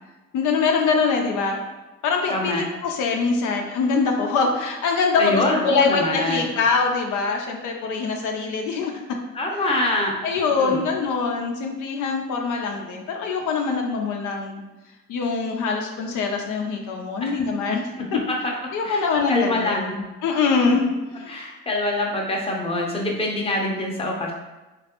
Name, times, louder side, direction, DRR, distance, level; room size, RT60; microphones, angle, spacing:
voice 1, 0.3-1.6 2.0-8.9 9.5-9.6 10.2-14.6 15.1-18.2 18.7-20.9 21.2-21.3, left 4 dB, 80° left, 2 dB, 0.5 m, -23 dB
voice 2, 2.3-2.6 5.2-6.5 9.3-10.2 10.6-10.8 17.2-17.3 18.0-18.1 18.8-19.9 20.7-20.8 21.3-24.3, left 2 dB, 20° left, -1 dB, 0.7 m, -25 dB
3.1 x 2.5 x 2.8 m, 1.1 s
cardioid pair, 90°, 30 cm